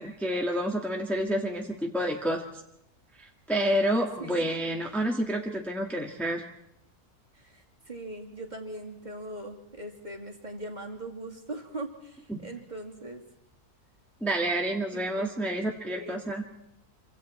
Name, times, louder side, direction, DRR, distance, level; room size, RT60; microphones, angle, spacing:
voice 1, 0.0-2.4 3.2-6.5 12.3-12.5 14.2-16.4, right 1 dB, ahead, 1 dB, 1.8 m, -29 dB
voice 2, 7.3-13.2 14.9-15.3 15.9-16.2, right 2 dB, 30° right, 2 dB, 2.8 m, -40 dB
27.0 x 25.5 x 4.4 m, 0.78 s
omnidirectional pair, 1.6 m